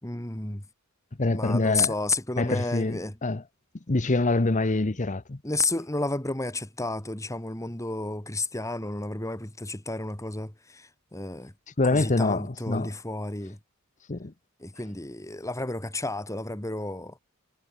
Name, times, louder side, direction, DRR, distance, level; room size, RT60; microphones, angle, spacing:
voice 1, 0.0-0.6 1.3-3.2 5.4-11.5 11.9-13.6 14.6-17.2, left 2 dB, 15° left, 2.7 m, -31 dB
voice 2, 1.2-1.9 2.4-3.4 3.9-5.4 11.8-12.9 14.1-14.3, left 2 dB, 35° left, 0.9 m, -25 dB
head